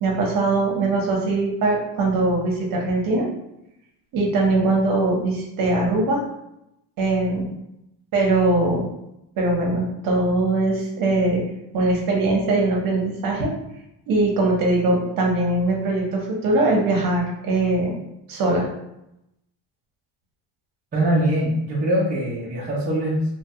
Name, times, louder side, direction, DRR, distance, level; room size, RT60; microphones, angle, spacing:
voice 1, 0.0-3.3 4.1-6.2 7.0-7.5 8.1-8.9 9.4-11.4 11.7-13.5 14.1-18.0 18.3-18.7, right 2 dB, 45° right, -1 dB, 0.8 m, -21 dB
voice 2, 20.9-23.4, right 1 dB, 20° right, -6 dB, 0.4 m, -22 dB
3.1 x 2.2 x 2.8 m, 0.84 s
cardioid pair, 170°, 47 cm